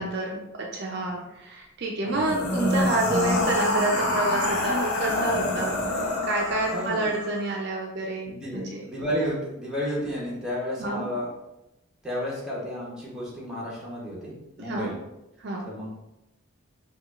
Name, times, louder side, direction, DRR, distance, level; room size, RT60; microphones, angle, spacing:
voice 1, 0.0-5.8 6.2-8.8 10.8-11.1 14.6-14.9 15.4-15.7, right 2 dB, 50° right, -1 dB, 0.4 m, -28 dB
sound 1, 2.1-7.4, left 2 dB, 85° left, 0.7 m, -26 dB
voice 2, 6.7-7.1 8.3-11.3 12.0-15.0 15.7-15.9, equal, 5° right, -6 dB, 0.8 m, -32 dB
4.7 x 2.4 x 2.4 m, 0.91 s
head